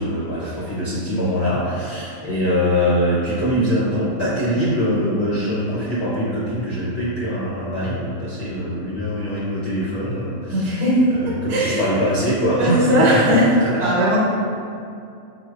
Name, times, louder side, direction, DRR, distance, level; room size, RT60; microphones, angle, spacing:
voice 1, 0.0-10.8 11.2-13.4, equal, 65° left, -9 dB, 0.7 m, -23 dB
voice 2, 10.5-11.0 11.5-11.9 12.6-13.5 13.8-14.2, equal, 80° right, -6 dB, 1.2 m, -18 dB
4.3 x 2.1 x 2.3 m, 2.5 s
omnidirectional pair, 1.6 m